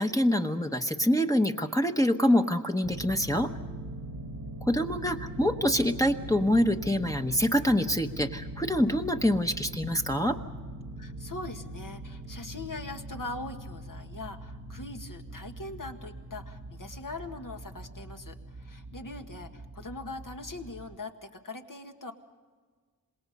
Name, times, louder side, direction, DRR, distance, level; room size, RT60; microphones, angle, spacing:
voice 1, 0.0-3.5 4.6-10.4, equal, 10° left, 3 dB, 1.1 m, -25 dB
sound 1, 2.8-21.0, right 1 dB, 90° right, 1.9 m, -41 dB
voice 2, 11.0-22.1, left 2 dB, 60° left, 5 dB, 1.8 m, -41 dB
27.0 x 20.5 x 5.3 m, 1.5 s
wide cardioid pair, 60°, 36 cm